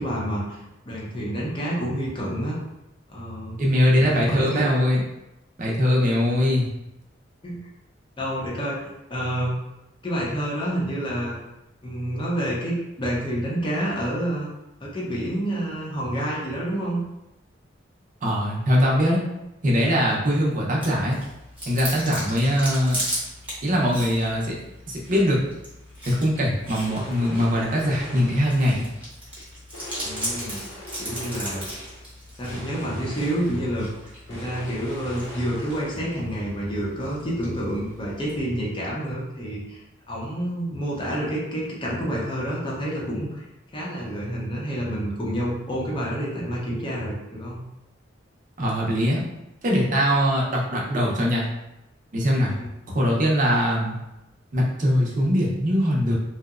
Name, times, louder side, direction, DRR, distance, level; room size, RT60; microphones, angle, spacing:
voice 1, 0.0-2.6 3.1-3.6 3.9-4.7 7.4-7.6 8.2-9.5 10.0-11.4 11.8-14.5 14.8-17.0 30.0-30.6 31.0-31.7 32.4-33.9 34.3-39.8 40.1-43.4 43.7-47.6 52.5-52.6, right 1 dB, 25° left, -5 dB, 0.6 m, -28 dB
voice 2, 3.6-5.0 5.6-6.7 18.2-19.2 19.6-21.2 21.7-23.0 23.6-24.6 24.9-25.4 26.1-28.8 48.6-49.2 49.6-51.5 52.1-52.5 52.9-53.9 54.5-56.1, equal, 45° right, -3 dB, 0.6 m, -21 dB
Chewing mastication, 20.8-38.4, equal, 10° right, 0.8 m, -37 dB
sound 1, 26.8-28.7 29.7-32.0 32.4-33.8 34.3-35.9, left 1 dB, 80° left, 0.9 m, -40 dB
2.7 x 2.0 x 2.3 m, 0.92 s
head